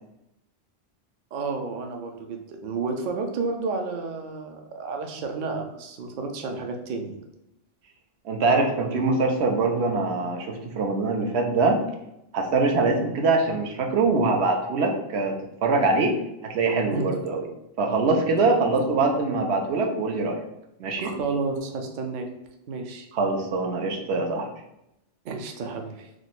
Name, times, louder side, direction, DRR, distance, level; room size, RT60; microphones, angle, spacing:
voice 1, 1.3-7.1 16.9-17.2 21.0-22.3 22.7-23.1 25.2-26.1, right 4 dB, 55° right, 4 dB, 0.6 m, -31 dB
voice 2, 8.2-11.8 12.3-16.2 16.4-17.5 17.8-20.4 20.8-21.1 23.1-24.5, right 3 dB, 80° right, 2 dB, 0.9 m, -23 dB
3.1 x 2.1 x 4.0 m, 0.85 s
omnidirectional pair, 1.1 m